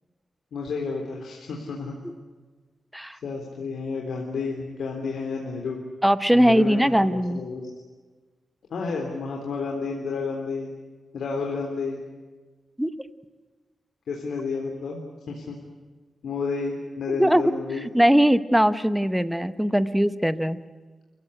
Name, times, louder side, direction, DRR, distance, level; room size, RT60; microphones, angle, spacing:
voice 1, 0.5-1.9 3.2-5.8 6.3-7.7 8.7-10.7 11.1-12.0 14.1-15.0 15.3-15.6 16.2-17.8, left 4 dB, 90° left, 0 dB, 3.6 m, -31 dB
voice 2, 6.0-7.4 12.8-12.9 17.2-17.4 17.9-20.6, equal, 5° right, 13 dB, 0.8 m, -20 dB
29.0 x 16.0 x 10.0 m, 1.3 s
wide cardioid pair, 175°, 0 cm